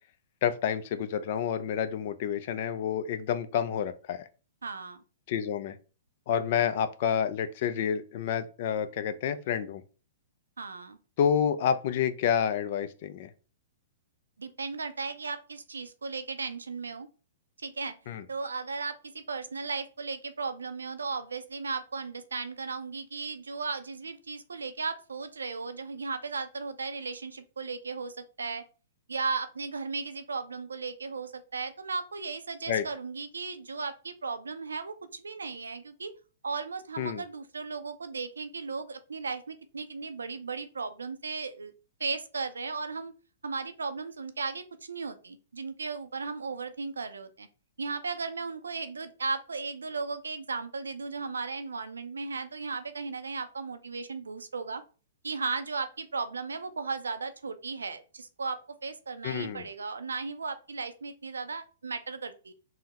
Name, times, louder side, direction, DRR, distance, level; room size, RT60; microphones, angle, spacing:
voice 1, 0.4-4.3 5.3-5.8 6.3-9.8 11.2-13.3 18.1-18.2 32.7-32.8 37.0-37.2 59.2-59.7, left 8 dB, 55° left, 11 dB, 0.4 m, -29 dB
voice 2, 4.6-5.0 10.6-11.0 14.4-17.1 17.6-17.9 18.3-28.6 29.1-36.1 36.4-41.7 42.0-43.1 43.4-47.5 47.8-54.8 55.2-62.5, right 4 dB, 90° right, 11 dB, 0.4 m, -36 dB
3.7 x 2.1 x 2.9 m, 0.35 s
hypercardioid pair, 125°, 0 cm